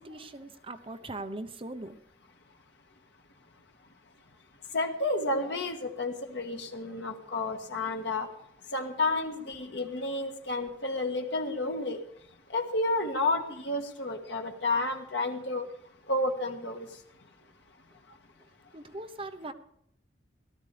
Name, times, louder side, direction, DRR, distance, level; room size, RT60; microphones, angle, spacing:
voice 1, 0.0-2.0 18.4-18.5 18.7-19.5, right 2 dB, 30° right, 7 dB, 0.9 m, -40 dB
voice 2, 4.7-8.3 8.7-12.0 12.5-15.6 16.1-16.9, left 2 dB, 75° left, 4 dB, 1.6 m, -31 dB
17.5 x 12.0 x 3.4 m, 0.72 s
head